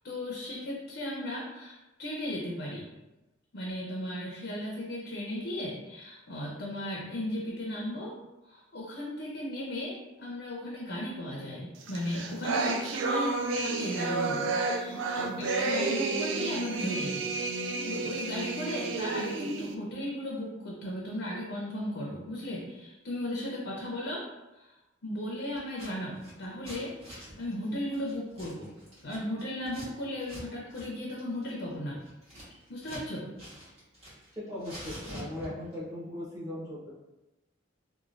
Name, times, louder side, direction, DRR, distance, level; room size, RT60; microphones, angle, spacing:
voice 1, 0.0-2.9 3.5-8.1 8.5-17.3 17.8-24.2 24.5-24.7 25.0-26.9 27.4-28.7 29.0-32.0 32.7-33.3, left 1 dB, 55° left, -3 dB, 0.5 m, -36 dB
sound 1, 11.9-19.7, right 3 dB, 70° right, 0.3 m, -31 dB
Scissors, 25.6-25.9 26.2-29.9 30.2-30.4 30.7-30.9 31.2-33.1 33.4-34.3 34.6-35.7, equal, 35° right, 1.2 m, -46 dB
voice 2, 34.4-36.9, left 1 dB, 15° right, -9 dB, 0.9 m, -38 dB
3.0 x 2.2 x 2.5 m, 1.0 s
head